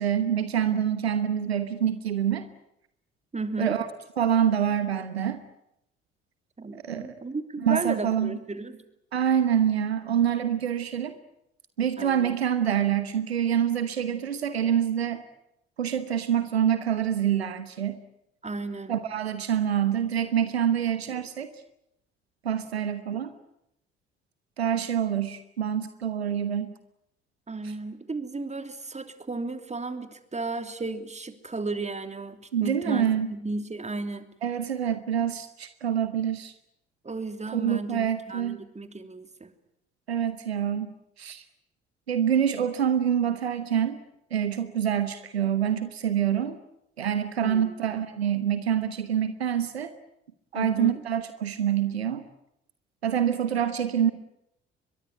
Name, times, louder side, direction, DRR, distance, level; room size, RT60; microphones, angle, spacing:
voice 1, 0.0-2.5 3.6-3.9 4.2-5.4 6.7-7.1 7.6-8.4 9.1-11.2 11.8-15.2 15.8-18.0 18.9-21.5 22.4-23.3 24.6-26.7 32.5-33.3 34.4-36.5 37.5-38.6 40.1-41.4 42.1-44.0 44.3-46.6 47.0-49.9 50.5-52.3 53.0-54.1, right 9 dB, 85° right, 12 dB, 1.1 m, -26 dB
voice 2, 3.3-3.7 6.6-8.8 12.0-12.3 18.4-18.9 27.5-34.3 37.0-39.5 47.4-47.8 50.5-51.0, right 3 dB, 20° right, 9 dB, 3.0 m, -34 dB
23.0 x 22.0 x 9.3 m, 0.79 s
figure-of-eight pair, 45°, 31 cm